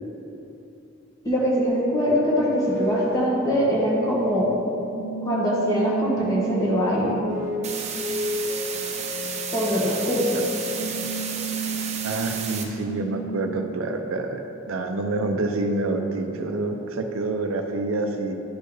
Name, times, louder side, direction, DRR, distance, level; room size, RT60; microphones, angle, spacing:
voice 1, 1.2-4.5 5.2-7.2 9.5-10.4, equal, 20° left, -6 dB, 1.4 m, -23 dB
sound 1, 1.7-13.7, right 2 dB, 70° left, 1.2 m, -32 dB
sound 2, 7.6-12.6, right 6 dB, 35° right, 0.6 m, -32 dB
voice 2, 12.0-18.3, right 2 dB, 90° right, 5 dB, 0.6 m, -27 dB
11.0 x 4.4 x 3.3 m, 2.9 s
head